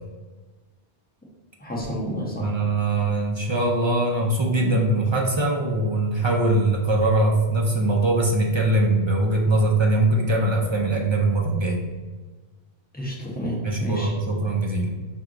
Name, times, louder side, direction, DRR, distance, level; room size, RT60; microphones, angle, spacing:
voice 1, 1.6-2.5 4.6-4.8 12.9-14.1, equal, 10° left, -4 dB, 0.8 m, -30 dB
voice 2, 2.4-11.8 13.6-14.9, right 2 dB, 45° right, 0 dB, 0.4 m, -22 dB
4.5 x 2.6 x 3.7 m, 1.3 s
omnidirectional pair, 1.1 m